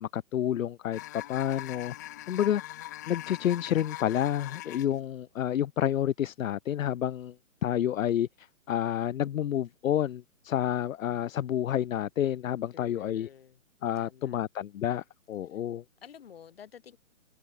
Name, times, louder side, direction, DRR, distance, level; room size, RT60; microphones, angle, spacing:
voice 1, 0.0-1.9 2.3-2.6 3.1-7.3 7.6-13.3 13.8-15.8, left 11 dB, 80° left, 0.6 m, -29 dB
sound 1, 0.9-5.0, left 15 dB, 15° left, 1.1 m, -42 dB
voice 2, 12.7-13.6 14.0-14.4 15.5-15.6 16.0-17.0, left 8 dB, 45° left, 7.2 m, -51 dB
open air
hypercardioid pair, 170°, 40 cm